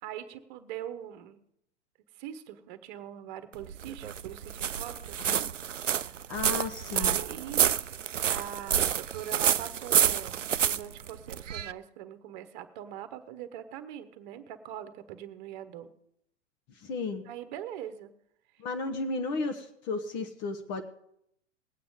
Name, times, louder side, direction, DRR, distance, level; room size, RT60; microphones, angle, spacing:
voice 1, 0.0-1.4 2.1-5.5 6.0-6.2 6.9-7.8 8.3-15.9 17.2-18.1 18.5-18.6, right 10 dB, 40° right, 11 dB, 1.2 m, -42 dB
sound 1, 3.5-11.7, right 9 dB, 90° right, 0.5 m, -28 dB
voice 2, 6.3-7.2 16.8-17.2 18.6-20.8, left 3 dB, 30° left, 6 dB, 1.1 m, -34 dB
20.0 x 8.6 x 3.6 m, 0.74 s
figure-of-eight pair, 105°, 36 cm